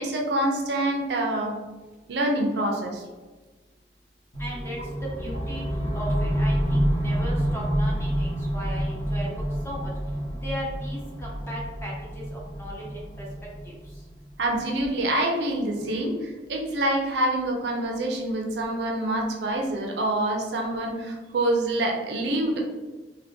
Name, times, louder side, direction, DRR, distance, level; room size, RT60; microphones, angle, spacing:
voice 1, 0.0-1.5 2.1-3.0 14.4-22.6, right 1 dB, 70° right, 1 dB, 0.5 m, -26 dB
sound 1, 4.3-14.4, equal, 50° left, 1.0 m, -28 dB
voice 2, 4.4-4.8 5.2-5.6 5.9-9.3 9.6-9.9 10.4-13.3 13.7-13.8, equal, 15° left, -4 dB, 0.7 m, -37 dB
3.4 x 2.2 x 2.6 m, 1.3 s
head